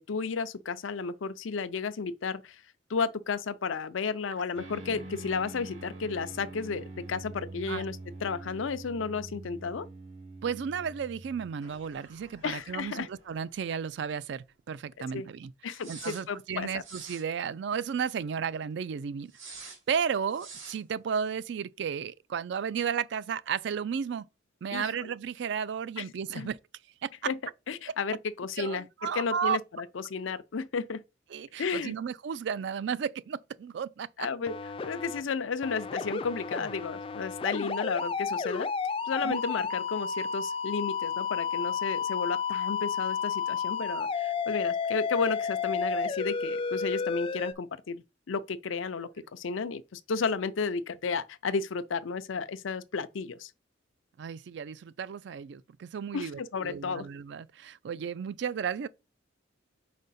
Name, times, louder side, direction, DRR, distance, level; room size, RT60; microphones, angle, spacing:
voice 1, 0.0-2.6 2.9-9.9 12.4-13.1 15.1-15.3 15.6-16.8 24.7-24.9 26.0-26.1 26.3-26.5 27.3-27.4 27.7-28.9 29.1-31.0 31.6-31.9 34.2-34.6 34.8-38.7 39.1-53.5 56.1-57.1, left 5 dB, 85° left, 0.5 m, -33 dB
sound 1, 4.5-13.7 14.0-14.1 15.8-16.2 16.8-17.2 19.3-19.8 20.3-20.8, right 2 dB, 80° right, 2.3 m, -45 dB
voice 2, 10.4-19.3 19.6-24.3 24.6-26.6 27.0-27.1 28.6-29.6 31.3-34.3 39.2-39.4 54.2-58.9, right 7 dB, 60° right, 0.3 m, -33 dB
sound 2, 34.5-35.2 35.6-47.5, left 5 dB, 30° left, 0.3 m, -32 dB
5.0 x 4.5 x 4.1 m
head